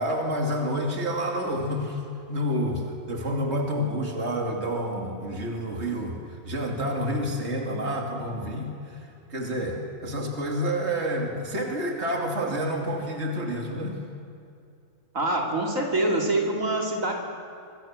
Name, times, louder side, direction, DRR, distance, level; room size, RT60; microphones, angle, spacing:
voice 1, 0.0-2.0 2.3-6.2 6.4-9.0 9.3-14.0, equal, 50° right, 1 dB, 3.1 m, -29 dB
voice 2, 15.1-17.1, right 2 dB, 75° right, 1 dB, 3.2 m, -25 dB
26.5 x 25.0 x 7.6 m, 2.5 s
omnidirectional pair, 1.4 m